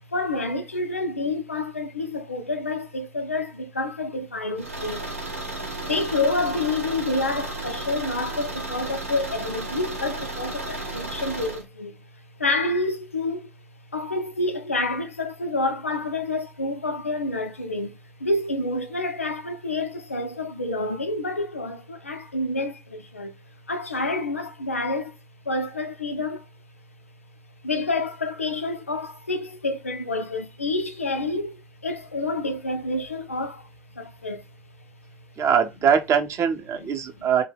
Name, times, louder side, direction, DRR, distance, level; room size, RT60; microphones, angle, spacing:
voice 1, 0.1-5.1 5.8-12.0 12.4-13.5 13.9-23.3 23.7-25.1 25.5-26.4 27.6-33.7 34.0-34.4 36.7-36.9 37.2-37.3, left 2 dB, 85° left, 0.4 m, -28 dB
Car / Engine, 4.6-11.6, right 2 dB, 90° right, 0.5 m, -33 dB
voice 2, 35.4-37.4, right 7 dB, 40° right, 0.6 m, -22 dB
2.2 x 2.0 x 3.4 m
figure-of-eight pair, 55°, 7 cm